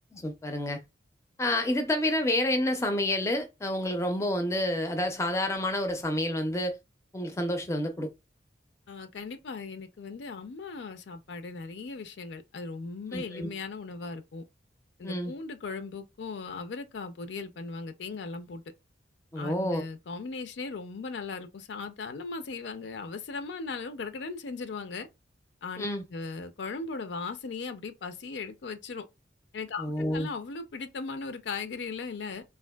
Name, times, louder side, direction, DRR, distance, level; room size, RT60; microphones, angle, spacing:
voice 1, 0.1-0.8 1.4-6.8 7.1-8.1 13.1-13.5 15.0-15.3 19.3-19.8 25.8-26.0 29.8-30.3, left 1 dB, 15° left, 0.4 m, -29 dB
voice 2, 8.9-14.4 15.0-18.6 19.4-25.1 25.6-29.0 29.5-32.4, left 4 dB, 75° left, 0.4 m, -38 dB
3.5 x 2.5 x 2.2 m
head